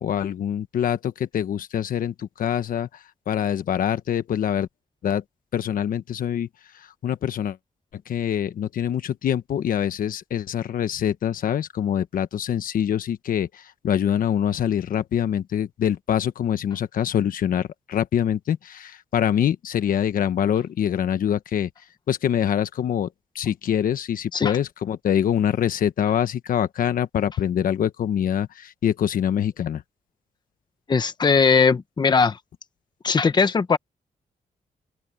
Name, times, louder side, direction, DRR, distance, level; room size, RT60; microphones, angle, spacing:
voice 1, 0.0-2.9 3.3-4.7 5.0-5.2 5.5-6.5 7.0-7.6 8.1-21.7 22.1-23.1 23.3-29.8, left 9 dB, 75° left, 1.2 m, -24 dB
voice 2, 30.9-32.4 33.0-33.8, left 5 dB, 30° left, 1.0 m, -19 dB
open air
wide cardioid pair, 135°, 14 cm